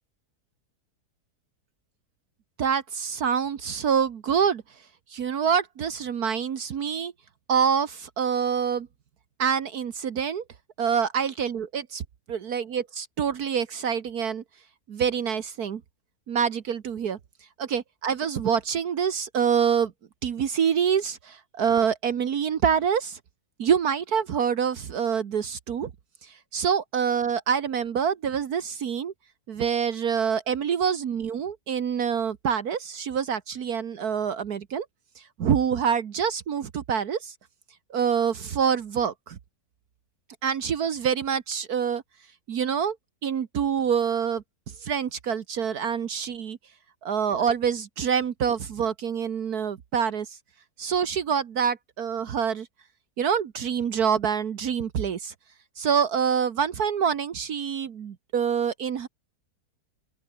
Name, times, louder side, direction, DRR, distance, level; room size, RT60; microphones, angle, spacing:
voice 1, 2.6-4.6 5.1-7.1 7.5-8.9 9.4-10.4 10.8-12.0 12.3-14.4 14.9-15.8 16.3-17.2 17.6-19.9 20.2-23.2 23.6-25.9 26.2-29.1 29.5-34.8 35.2-37.3 37.9-39.4 40.4-42.0 42.5-43.0 43.2-44.4 44.8-46.6 47.0-50.4 50.8-52.7 53.2-55.3 55.8-59.1, right 7 dB, 70° right, 1.7 m, -26 dB
open air
omnidirectional pair, 1.7 m